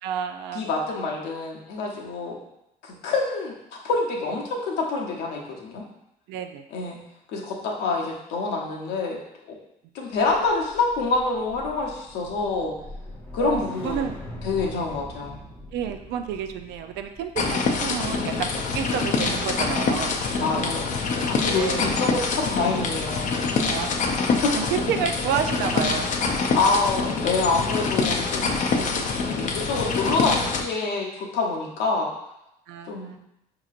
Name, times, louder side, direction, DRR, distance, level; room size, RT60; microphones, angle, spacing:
voice 1, 0.0-0.6 6.3-6.7 13.4-14.2 15.7-20.9 21.6-22.1 23.6-24.1 24.5-26.1 32.7-33.2, right 8 dB, 85° right, 7 dB, 0.4 m, -30 dB
voice 2, 0.5-2.4 2.8-3.5 3.8-5.8 6.7-7.0 7.3-9.5 9.9-12.7 13.3-14.0 14.4-15.4 20.4-23.4 24.3-24.5 26.5-29.1 29.3-32.1 32.9-33.1, left 3 dB, 85° left, -1 dB, 0.9 m, -26 dB
sound 1, 10.1-20.5 20.9-21.2, left 1 dB, 10° left, 0.7 m, -42 dB
sound 2, 17.4-30.6, left 4 dB, 50° left, 0.5 m, -25 dB
5.2 x 2.9 x 2.4 m, 0.85 s
cardioid pair, 110°, 17 cm